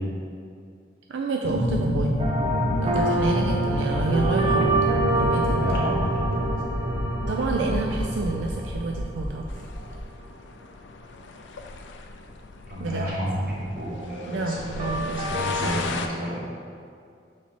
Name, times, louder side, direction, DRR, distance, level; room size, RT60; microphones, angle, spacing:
voice 1, 1.1-2.2 2.8-5.6 7.3-9.4 12.8-13.1 14.3-15.4, right 3 dB, 85° right, 1 dB, 0.4 m, -29 dB
sound 1, 1.4-10.0, equal, 5° right, 0.9 m, -27 dB
sound 2, 2.2-9.4 14.8-15.7, right 1 dB, 30° right, 0.7 m, -27 dB
voice 2, 5.4-6.8 12.7-16.4, equal, 50° right, -5 dB, 1.4 m, -31 dB
sound 3, 9.5-16.1, left 4 dB, 80° left, 0.5 m, -37 dB
5.9 x 4.4 x 4.2 m, 2.3 s
head